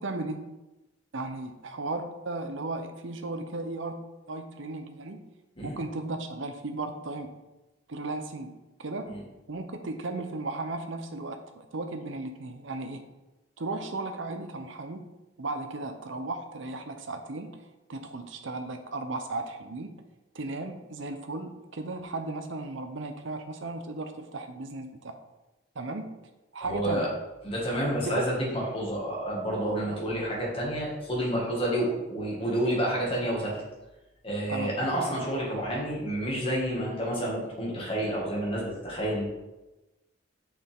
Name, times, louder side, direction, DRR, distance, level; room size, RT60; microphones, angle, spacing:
voice 1, 0.0-0.4 1.1-4.0 4.3-5.2 5.6-7.3 7.9-9.2 9.5-13.0 13.6-15.1 15.4-17.6 17.9-19.9 20.3-25.2 25.8-26.1 26.5-27.1 27.9-28.2 29.8-30.0 34.5-34.8, right 2 dB, 75° right, 7 dB, 0.7 m, -35 dB
voice 2, 26.6-27.1 27.4-33.6 34.2-39.2, right 1 dB, 30° left, -4 dB, 2.0 m, -29 dB
6.3 x 6.0 x 3.6 m, 1.0 s
head